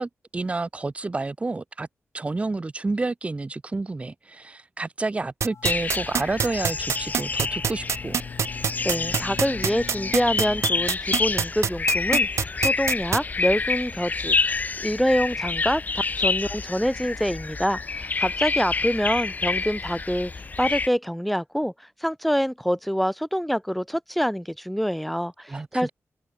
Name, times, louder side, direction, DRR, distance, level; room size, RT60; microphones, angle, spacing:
voice 1, 0.0-1.9 2.1-8.2 25.5-25.9, right 3 dB, 25° right, 1.6 m, -30 dB
sound 1, 5.4-13.2, right 7 dB, 65° right, 1.8 m, -24 dB
sound 2, 5.5-10.9, left 6 dB, 65° left, 6.5 m, -42 dB
sound 3, 5.6-20.9, left 4 dB, 35° left, 0.7 m, -28 dB
voice 2, 8.8-20.3 20.6-21.7 22.0-25.9, equal, ahead, 1.6 m, -26 dB
wide cardioid pair, 135°, 5 cm